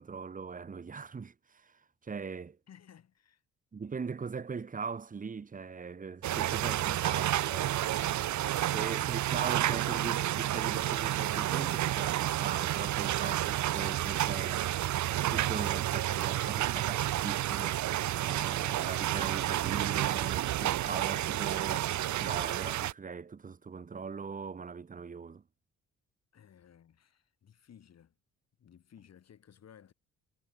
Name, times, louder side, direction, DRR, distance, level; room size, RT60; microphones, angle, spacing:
voice 1, 0.0-2.6 3.7-7.8 8.5-14.7 15.3-25.4, right 5 dB, 25° right, 1.1 m, -40 dB
voice 2, 2.7-3.4 6.3-6.8 8.6-8.9 15.5-17.3 26.3-28.1 28.6-29.9, left 9 dB, 55° left, 6.2 m, -56 dB
sound 1, 6.2-22.9, right 13 dB, 70° right, 1.1 m, -30 dB
cardioid pair, 90°, 30 cm